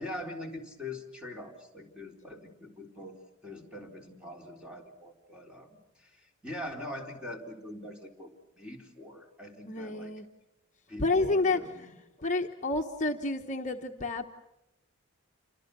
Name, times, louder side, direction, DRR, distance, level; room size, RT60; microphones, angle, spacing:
voice 1, 0.0-5.7 6.0-10.1 10.9-11.9, left 1 dB, 5° right, 1 dB, 3.8 m, -43 dB
voice 2, 9.7-10.3 11.0-11.9 12.2-14.3, left 2 dB, 35° left, 3 dB, 1.0 m, -29 dB
29.0 x 25.5 x 6.8 m, 0.95 s
head